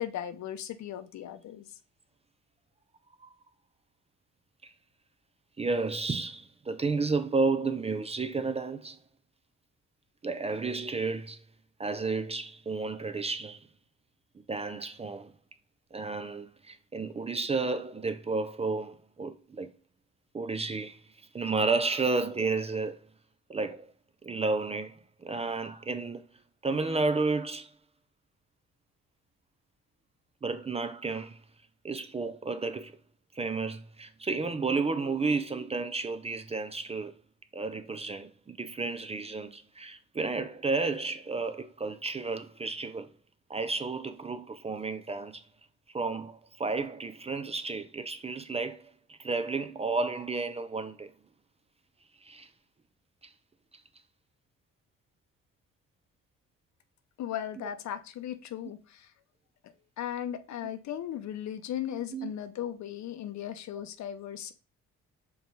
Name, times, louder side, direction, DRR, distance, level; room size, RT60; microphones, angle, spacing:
voice 1, 0.0-1.7 57.2-59.1 59.6-64.5, left 10 dB, 65° left, 0.6 m, -37 dB
voice 2, 5.6-9.0 10.2-11.4 11.8-13.7 14.5-15.3 15.9-19.7 20.3-21.0 21.3-23.0 23.5-23.9 24.2-26.2 26.6-27.7 30.4-31.4 31.8-33.0 33.4-37.1 37.5-43.1 43.5-45.4 45.9-51.1 52.2-52.5 53.2-53.3 57.6-57.7 62.1-62.3, right 3 dB, 20° right, 0.4 m, -32 dB
5.2 x 3.1 x 3.1 m
cardioid pair, 90°, 30 cm